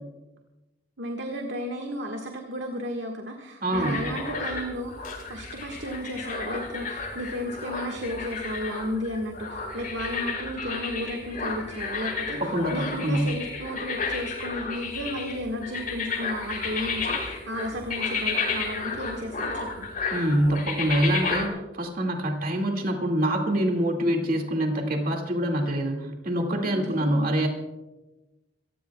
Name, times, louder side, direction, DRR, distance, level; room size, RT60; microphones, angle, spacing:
voice 1, 1.0-19.9 26.6-27.3, equal, 75° right, 2 dB, 1.7 m, -34 dB
voice 2, 3.6-4.0 12.4-13.3 20.1-27.5, right 1 dB, 50° right, 2 dB, 2.2 m, -25 dB
sound 1, 3.7-21.5, left 4 dB, 50° left, 4.9 m, -32 dB
26.5 x 15.5 x 2.3 m, 1.1 s
head